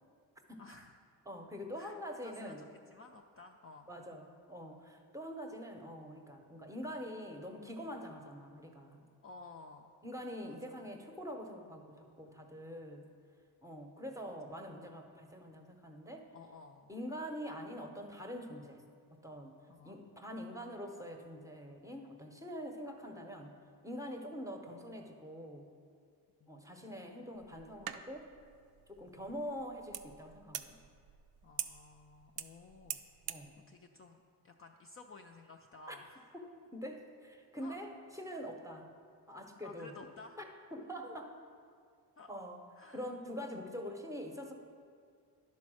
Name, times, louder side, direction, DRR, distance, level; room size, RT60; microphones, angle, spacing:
voice 1, 0.6-1.0 1.7-2.0 2.2-3.9 9.2-9.9 10.4-10.6 16.3-16.9 19.7-20.0 26.4-27.1 29.2-29.5 31.4-33.0 33.7-36.3 37.6-37.8 39.6-40.4 42.2-42.3 42.8-43.1, left 3 dB, 35° left, 2 dB, 0.4 m, -54 dB
voice 2, 1.3-2.6 3.9-9.1 10.0-13.1 13.6-16.3 16.9-18.9 19.2-23.5 23.8-25.7 26.5-28.3 28.9-30.7 33.3-33.6 35.9-36.0 36.7-38.9 39.3-39.9 40.7-41.3 42.3-42.6 42.9-44.5, equal, 10° right, 3 dB, 0.7 m, -45 dB
sound 1, 27.4-33.5, right 10 dB, 60° right, 0.5 m, -46 dB
10.5 x 4.2 x 6.2 m, 2.3 s
cardioid pair, 135°, 42 cm